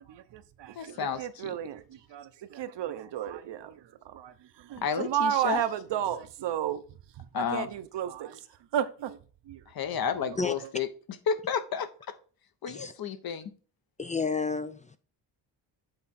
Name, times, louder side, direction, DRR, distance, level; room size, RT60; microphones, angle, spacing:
voice 1, 0.0-8.4 8.7-9.2 9.5-9.6 10.0-10.1, right 10 dB, 60° right, 0.8 m, -33 dB
voice 2, 0.8-1.6 4.8-5.6 7.3-7.7 9.7-10.9 11.3-11.9 12.6-13.5, left 7 dB, 50° left, 0.9 m, -31 dB
voice 3, 14.0-15.0, left 4 dB, 20° left, 0.3 m, -31 dB
7.9 x 3.6 x 4.2 m
cardioid pair, 90°, 48 cm